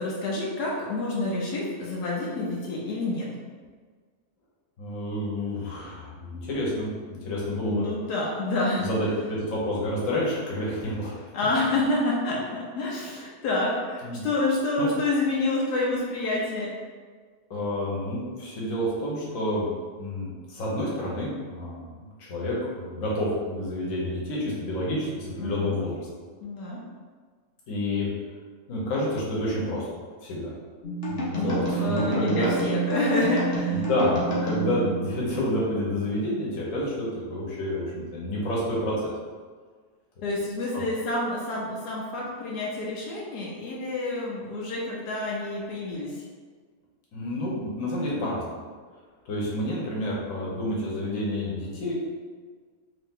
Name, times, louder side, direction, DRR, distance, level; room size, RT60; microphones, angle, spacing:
voice 1, 0.0-3.3 7.6-8.9 11.3-16.7 25.4-25.8 26.4-26.8 31.4-33.8 40.2-46.1, left 2 dB, 85° left, -4 dB, 1.2 m, -28 dB
voice 2, 4.8-7.8 8.7-11.2 14.0-14.2 14.8-14.9 17.5-19.7 20.0-25.9 27.7-28.1 28.7-29.9 30.2-30.5 31.1-32.5 33.7-39.1 40.7-40.8 47.1-48.4 49.3-51.9, left 1 dB, 60° left, -5 dB, 1.4 m, -29 dB
sound 1, 30.8-35.7, right 3 dB, 45° left, 1.0 m, -29 dB
3.4 x 2.9 x 3.6 m, 1.5 s
omnidirectional pair, 1.6 m